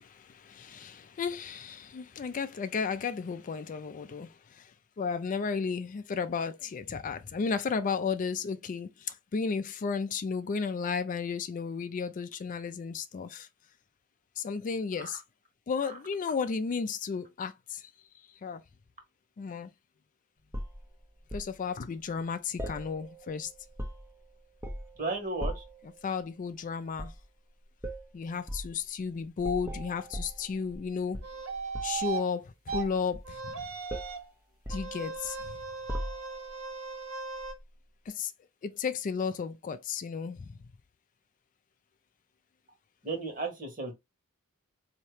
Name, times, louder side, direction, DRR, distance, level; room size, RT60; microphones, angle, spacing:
voice 1, 0.0-4.7 5.0-13.5 14.4-15.2 15.7-17.9 18.4-18.6 19.4-19.7 21.3-23.5 26.0-27.1 28.1-31.2 31.8-33.7 34.7-35.4 38.1-38.3 38.6-40.6, left 5 dB, 35° left, 0.3 m, -33 dB
sound 1, 20.5-21.5 22.6-23.3 23.6-24.2 24.6-25.0 25.4-25.8 26.9-27.2 27.8-28.1 28.5-28.7 29.4-30.9 31.1-32.1 32.7-33.6 33.9-34.2 34.7-35.5 35.9-36.5 37.4-37.6, equal, 10° right, 0.6 m, -39 dB
voice 2, 25.0-25.6 43.0-43.9, right 3 dB, 40° right, 1.5 m, -34 dB
sound 2, 31.2-32.2 32.7-32.8 33.2-34.3 34.7-37.5, right 5 dB, 65° right, 0.7 m, -37 dB
4.2 x 2.8 x 3.2 m
head